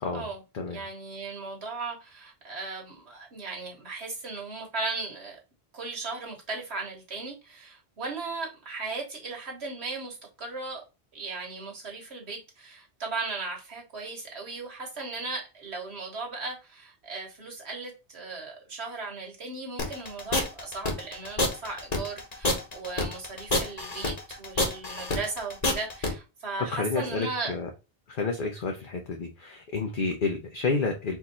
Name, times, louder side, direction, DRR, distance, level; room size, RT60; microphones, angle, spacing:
voice 1, 0.7-5.4 5.7-10.8 11.1-27.5, right 3 dB, 70° right, 1.7 m, -37 dB
sound 1, 19.8-26.1, left 2 dB, 40° left, 1.2 m, -27 dB
voice 2, 26.7-27.7 28.1-31.2, left 4 dB, 55° left, 0.8 m, -30 dB
4.6 x 2.7 x 4.2 m
omnidirectional pair, 1.1 m